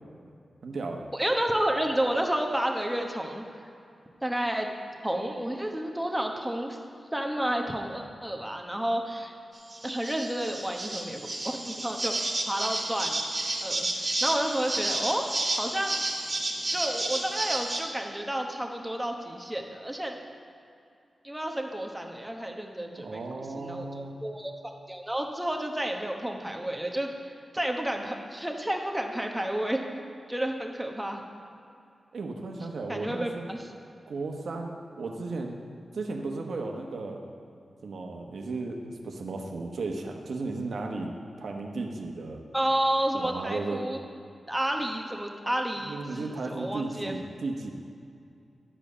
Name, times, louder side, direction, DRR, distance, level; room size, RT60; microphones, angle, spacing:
voice 1, 0.6-1.0 22.9-24.2 32.1-33.5 34.1-35.6 35.9-37.2 37.8-41.1 41.4-42.4 43.1-43.8 45.8-47.7, right 3 dB, 80° right, 2 dB, 1.0 m, -35 dB
voice 2, 1.1-3.4 4.2-4.7 5.0-6.8 7.1-9.3 9.8-13.2 13.6-15.3 15.6-16.0 16.7-20.2 21.2-23.2 23.5-24.5 24.9-27.1 27.5-30.0 30.3-31.2 32.9-33.6 42.5-44.0 44.5-47.1, right 1 dB, 10° right, 2 dB, 1.1 m, -30 dB
sound 1, 9.6-17.8, right 2 dB, 35° right, 2.0 m, -31 dB
11.0 x 5.1 x 6.8 m, 2.5 s
cardioid pair, 65°, 0 cm